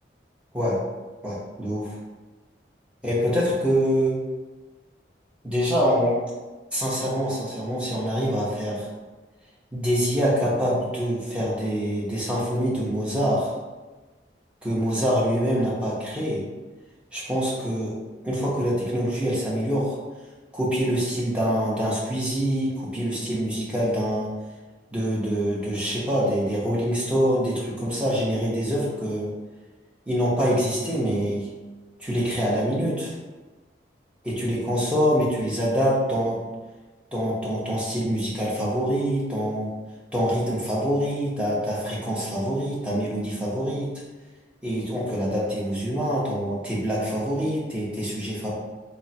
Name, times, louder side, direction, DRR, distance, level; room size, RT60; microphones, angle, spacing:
voice 1, 1.2-1.9 3.0-4.2 5.4-6.2 6.7-8.9 9.7-13.5 14.6-16.4 17.1-17.9 18.2-20.0 20.5-24.3 24.9-29.3 30.1-31.5 32.0-33.1 34.2-36.4 37.1-39.7 40.1-43.9 44.6-48.5, equal, 5° right, -6 dB, 0.8 m, -25 dB
3.5 x 2.1 x 4.1 m, 1.2 s
head